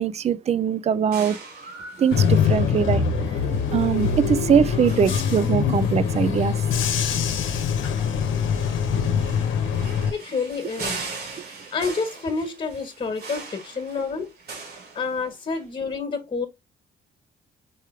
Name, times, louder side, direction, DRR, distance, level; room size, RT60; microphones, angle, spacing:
voice 1, 0.0-1.4 2.0-3.0 3.3-3.4 3.7-6.6, right 7 dB, 35° right, 0.4 m, -22 dB
sound 1, 1.1-15.6, right 3 dB, 50° right, 2.4 m, -41 dB
Bus / Engine, 2.1-10.1, left 7 dB, 75° left, 0.9 m, -23 dB
voice 2, 10.1-11.1 11.7-14.3 14.9-16.5, left 4 dB, 30° left, 1.5 m, -28 dB
4.6 x 3.3 x 3.2 m
cardioid pair, 90°, 20 cm